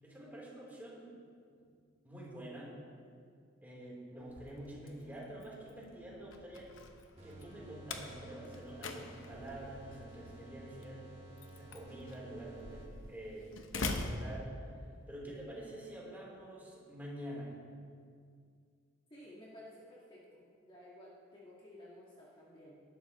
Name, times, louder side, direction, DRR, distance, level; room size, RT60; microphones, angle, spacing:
voice 1, 0.0-1.1 1.5-1.7 2.0-2.7 3.6-6.7 7.2-11.0 11.5-14.7 15.1-17.6, right 1 dB, 10° right, -6 dB, 3.7 m, -47 dB
Slam, 4.2-15.1, left 3 dB, 75° left, 1.0 m, -45 dB
sound 1, 7.2-13.3, right 2 dB, 35° right, 2.3 m, -54 dB
voice 2, 19.1-22.8, left 1 dB, 25° left, -6 dB, 1.8 m, -54 dB
19.0 x 11.5 x 3.1 m, 2.2 s
head